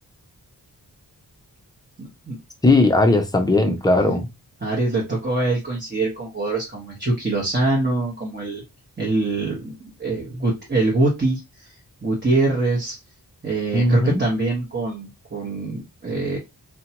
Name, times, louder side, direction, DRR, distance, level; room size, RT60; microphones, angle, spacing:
voice 1, 2.0-2.4 4.6-8.6 9.0-11.4 12.0-13.0 13.4-16.4, right 2 dB, 25° right, 1.0 m, -24 dB
voice 2, 2.6-4.3 13.7-14.2, left 2 dB, 10° left, 0.5 m, -17 dB
2.7 x 2.2 x 2.8 m
wide cardioid pair, 90°, 40 cm